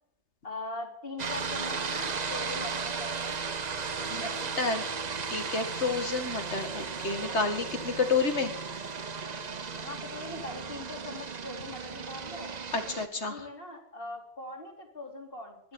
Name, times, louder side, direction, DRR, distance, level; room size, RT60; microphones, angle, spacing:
voice 1, 0.4-3.4 4.0-4.5 9.8-12.5 13.3-15.7, left 2 dB, 50° left, 1 dB, 3.3 m, -41 dB
sound 1, 1.2-13.1, right 5 dB, 40° right, 0.9 m, -35 dB
voice 2, 5.3-8.5 12.7-13.5, left 4 dB, 65° left, 7 dB, 2.1 m, -30 dB
12.5 x 11.0 x 8.4 m, 0.70 s
omnidirectional pair, 1.2 m